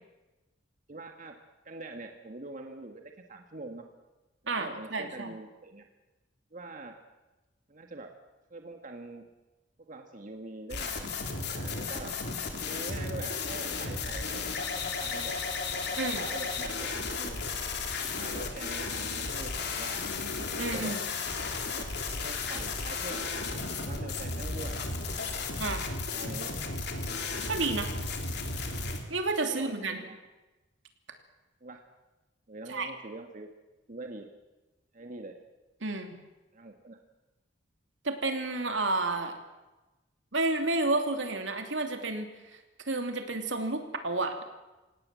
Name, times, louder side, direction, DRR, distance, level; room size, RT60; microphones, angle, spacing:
voice 1, 0.9-1.4 1.6-3.9 4.5-5.8 6.5-7.0 7.7-8.1 8.5-9.2 9.8-11.1 11.4-12.1 12.6-15.4 15.9-17.4 18.0-20.0 20.7-21.0 21.7-21.8 22.2-23.3 23.8-25.4 26.1-26.5 29.4-30.2 31.6-31.8 32.5-33.5 33.9-34.3 34.9-35.4 36.5-37.0, right 2 dB, 45° right, 4 dB, 1.7 m, -44 dB
voice 2, 4.5-5.3 16.0-16.3 20.6-21.0 25.6-25.9 27.5-27.9 29.1-30.0 32.7-32.9 35.8-36.1 38.0-39.4 40.3-42.6 42.9-44.4, right 2 dB, 75° right, 6 dB, 2.9 m, -31 dB
sound 1, 10.7-29.0, left 4 dB, 60° left, 3.3 m, -34 dB
27.0 x 18.0 x 7.6 m, 1.1 s
head